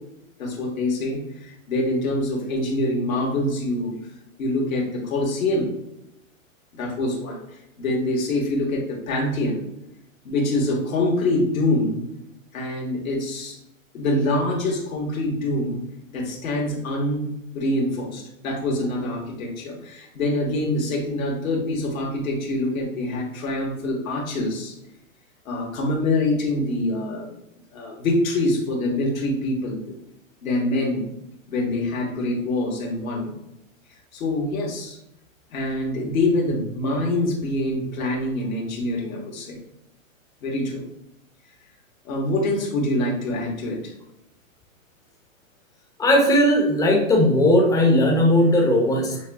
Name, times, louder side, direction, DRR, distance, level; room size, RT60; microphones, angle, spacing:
voice 1, 0.4-3.9 4.4-5.8 6.7-9.6 10.2-12.1 12.5-13.6 13.9-15.8 16.1-17.2 17.5-24.7 25.4-27.3 27.7-29.8 30.4-31.1 31.5-33.3 34.1-35.0 35.5-39.6 40.4-40.8 42.0-43.8, left 1 dB, 75° left, -2 dB, 1.6 m, -25 dB
voice 2, 46.0-49.2, left 1 dB, 10° left, 0 dB, 0.7 m, -18 dB
6.0 x 2.2 x 3.5 m, 0.84 s
hypercardioid pair, 135°, 41 cm